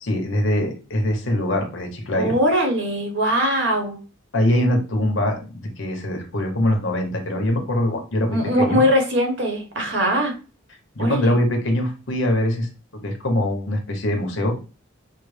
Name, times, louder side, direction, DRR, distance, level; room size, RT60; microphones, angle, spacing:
voice 1, 0.0-2.3 4.3-8.8 11.0-14.6, left 1 dB, 75° left, 4 dB, 1.0 m, -23 dB
voice 2, 2.2-4.0 8.3-10.3 11.0-11.4, equal, 70° right, 3 dB, 1.2 m, -21 dB
5.8 x 2.0 x 3.3 m, 0.33 s
head